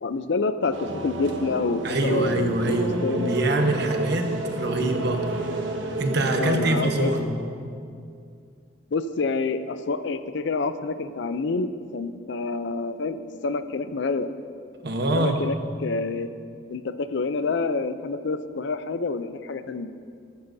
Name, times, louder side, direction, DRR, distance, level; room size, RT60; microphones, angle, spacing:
voice 1, 0.0-3.3 6.4-7.1 8.9-14.3 15.1-15.5 15.8-16.3 16.7-19.9, left 4 dB, 65° left, 11 dB, 0.5 m, -28 dB
sound 1, 0.7-7.2, right 2 dB, 90° right, 1.1 m, -31 dB
voice 2, 1.8-5.6 6.0-7.3 14.8-15.5, right 2 dB, 60° right, 4 dB, 1.1 m, -25 dB
14.0 x 13.5 x 2.7 m, 2.3 s
head